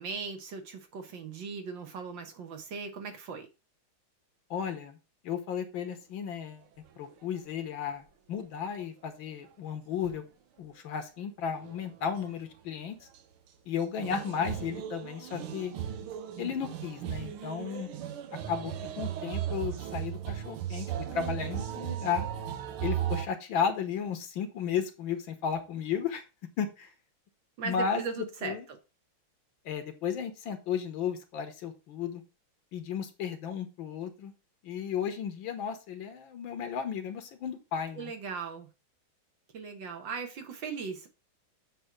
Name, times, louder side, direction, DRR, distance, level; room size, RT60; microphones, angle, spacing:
voice 1, 0.0-3.5 27.6-28.8 38.0-38.7 39.5-41.1, right 5 dB, 65° right, 1.8 m, -38 dB
voice 2, 4.5-5.0 5.2-6.6 7.0-10.2 10.6-13.0 13.7-15.7 16.4-17.9 18.5-22.3 22.8-26.2 26.6-26.9 27.6-28.6 29.6-32.2 32.7-34.3 34.6-38.1, left 7 dB, 70° left, 1.7 m, -34 dB
sound 1, 10.0-10.2 11.6-11.9 12.2-12.3 14.0-23.3, right 10 dB, 85° right, 1.7 m, -36 dB
7.7 x 3.1 x 5.8 m
omnidirectional pair, 2.3 m